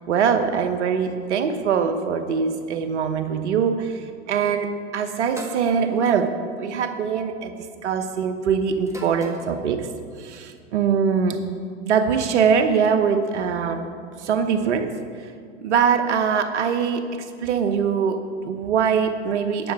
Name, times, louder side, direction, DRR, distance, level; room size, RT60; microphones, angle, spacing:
voice 1, 0.1-7.6 7.8-9.9 10.2-11.4 11.8-13.9 14.2-14.9 15.6-19.7, right 6 dB, 80° right, 8 dB, 1.0 m, -22 dB
sound 1, 5.4-5.7 6.9-7.2 8.9-9.5, right 2 dB, 10° right, 1.6 m, -38 dB
10.0 x 7.0 x 6.3 m, 2.2 s
hypercardioid pair, 95°, 34 cm